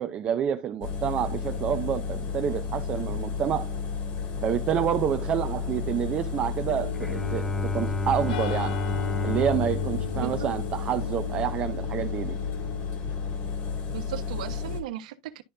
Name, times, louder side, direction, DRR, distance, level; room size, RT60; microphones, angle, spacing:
voice 1, 0.0-3.7 4.4-8.8 9.2-12.4, right 9 dB, 25° right, 0.7 m, -28 dB
Engine, 0.8-14.8, left 5 dB, 40° left, 2.4 m, -32 dB
sound 1, 6.7-13.0, left 9 dB, 80° left, 0.6 m, -38 dB
Bowed string instrument, 6.9-11.5, left 3 dB, 5° left, 0.4 m, -32 dB
voice 2, 10.1-10.5 13.9-15.4, right 12 dB, 75° right, 1.3 m, -36 dB
12.0 x 4.2 x 2.7 m
supercardioid pair, 155°, 4 cm